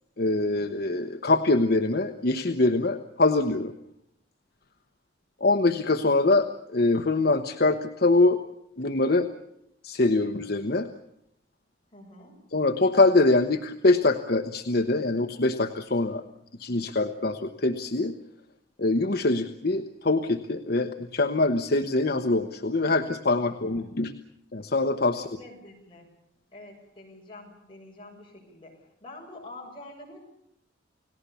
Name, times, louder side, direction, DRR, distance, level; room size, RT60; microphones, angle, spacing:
voice 1, 0.2-3.7 5.4-8.4 8.8-9.3 9.8-10.9 12.5-16.2 16.6-18.1 18.8-24.1 24.5-25.2, left 2 dB, 55° left, 7 dB, 1.0 m, -24 dB
voice 2, 11.9-12.4 23.5-23.9 25.1-26.1 26.5-30.2, left 2 dB, 30° left, -1 dB, 7.2 m, -47 dB
29.5 x 18.0 x 7.0 m, 0.77 s
head